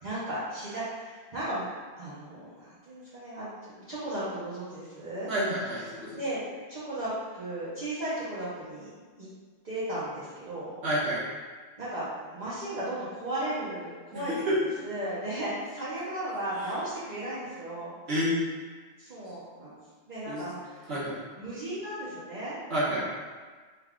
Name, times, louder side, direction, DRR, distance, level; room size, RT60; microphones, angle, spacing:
voice 1, 0.0-1.7 2.0-5.3 6.1-6.4 6.7-8.9 9.2-9.3 9.6-10.7 11.8-14.3 14.8-18.0 19.0-19.7 20.1-20.8 21.4-22.6 22.9-23.0, right 1 dB, 45° right, -11 dB, 0.7 m, -35 dB
voice 2, 5.3-6.2 10.8-11.2 14.1-14.5 18.1-18.3 20.3-20.4 20.9-21.1 22.7-23.0, right 1 dB, 70° right, -8 dB, 1.4 m, -29 dB
3.4 x 2.3 x 3.5 m, 1.5 s
omnidirectional pair, 1.1 m